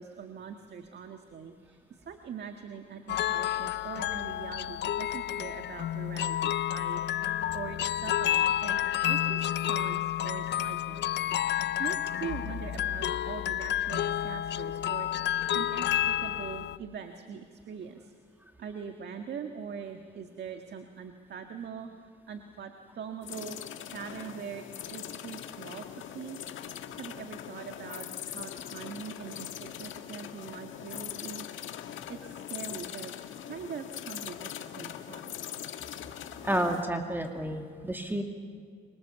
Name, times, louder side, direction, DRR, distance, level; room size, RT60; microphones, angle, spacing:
voice 1, 0.0-1.8 2.0-7.0 7.5-11.0 11.8-18.1 18.6-21.9 22.3-23.6 23.9-26.4 27.0-31.5 32.1-33.1 33.4-35.3, right 7 dB, 60° right, 5 dB, 1.7 m, -42 dB
sound 1, 3.1-16.8, left 11 dB, 60° left, 0.5 m, -30 dB
sound 2, 23.2-36.9, left 10 dB, 75° left, 1.5 m, -41 dB
voice 2, 36.4-38.2, right 1 dB, 10° right, 3 dB, 2.3 m, -30 dB
26.0 x 24.5 x 7.1 m, 2.1 s
cardioid pair, 90°, 20 cm